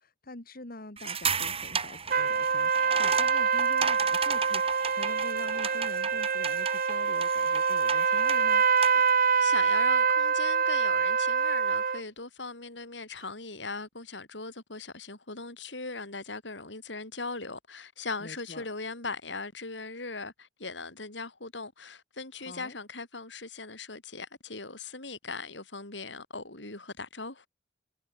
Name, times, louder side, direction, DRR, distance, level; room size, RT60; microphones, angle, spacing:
voice 1, 0.0-8.6 18.2-18.7 22.4-22.8, left 2 dB, 55° left, 2.8 m, -45 dB
sound 1, 1.0-9.1, right 6 dB, 35° right, 5.0 m, -35 dB
sound 2, 2.1-12.0, right 6 dB, 50° right, 1.6 m, -25 dB
voice 2, 9.3-27.5, left 3 dB, 85° left, 6.0 m, -39 dB
head